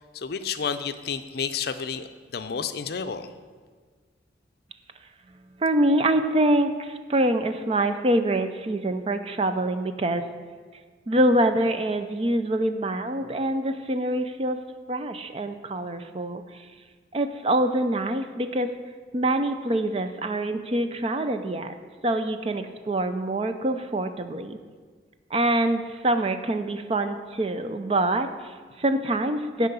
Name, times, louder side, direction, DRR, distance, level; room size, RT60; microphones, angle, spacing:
voice 1, 0.0-3.3, left 6 dB, 60° left, 10 dB, 0.5 m, -31 dB
voice 2, 5.6-10.3 11.1-14.6 14.9-16.4 17.1-18.8 19.1-21.7 22.0-24.6 25.3-29.7, right 1 dB, 30° right, 8 dB, 0.5 m, -25 dB
10.5 x 4.9 x 6.9 m, 1.6 s
head